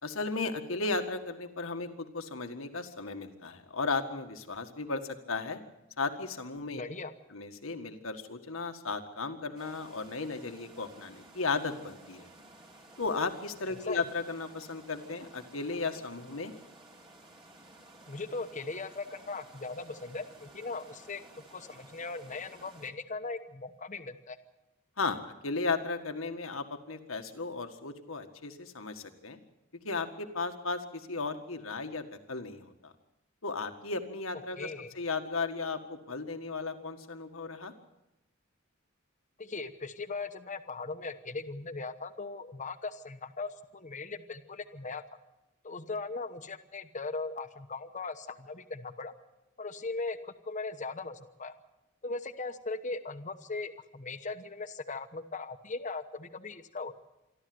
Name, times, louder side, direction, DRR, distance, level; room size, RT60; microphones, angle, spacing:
voice 1, 0.0-5.6 6.0-6.8 7.3-12.3 13.0-16.5 25.0-29.4 29.8-32.9 33.4-34.7 35.0-37.7, left 3 dB, 90° left, 6 dB, 1.8 m, -35 dB
voice 2, 6.7-7.1 13.7-14.0 18.1-21.2 21.5-24.4 34.6-34.9 39.4-45.0 45.6-49.1 49.6-51.6 52.0-56.9, left 3 dB, 40° left, 9 dB, 1.1 m, -39 dB
sound 1, 9.6-22.9, right 2 dB, 25° right, 2.6 m, -55 dB
26.5 x 12.5 x 7.9 m, 0.96 s
head